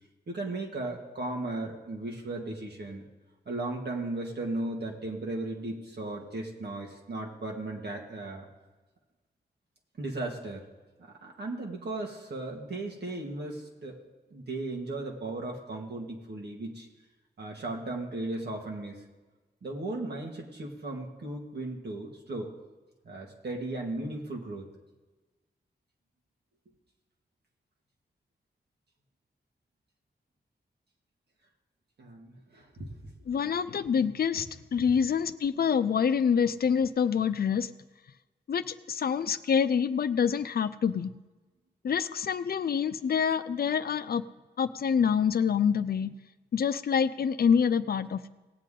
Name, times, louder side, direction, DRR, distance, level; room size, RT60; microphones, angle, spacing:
voice 1, 0.3-3.0 3.5-8.5 10.0-10.7 11.0-14.0 14.3-16.9 17.4-19.0 19.6-22.5 23.0-24.7 32.0-32.9, right 2 dB, 75° right, 0 dB, 2.0 m, -36 dB
voice 2, 33.3-37.7 38.5-41.1 41.8-44.2 44.6-46.1 46.5-48.3, left 7 dB, 60° left, 13 dB, 0.5 m, -26 dB
18.5 x 8.3 x 3.8 m, 1.2 s
wide cardioid pair, 75°, 17 cm